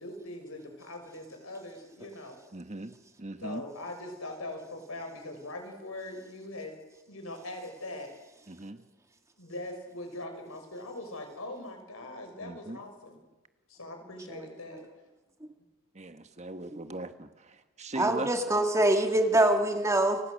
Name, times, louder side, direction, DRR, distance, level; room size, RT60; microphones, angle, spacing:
voice 1, 0.0-2.4 3.4-6.7 7.1-8.1 9.4-13.2 13.7-14.8, left 1 dB, 70° left, 4 dB, 6.1 m, -41 dB
voice 2, 2.5-2.9 3.2-3.6 8.5-8.8 12.4-12.8 15.9-17.3 17.8-18.3, right 2 dB, 30° right, 9 dB, 1.3 m, -38 dB
voice 3, 18.0-20.2, right 1 dB, 15° right, 5 dB, 2.0 m, -24 dB
30.0 x 25.5 x 6.5 m, 1.1 s
head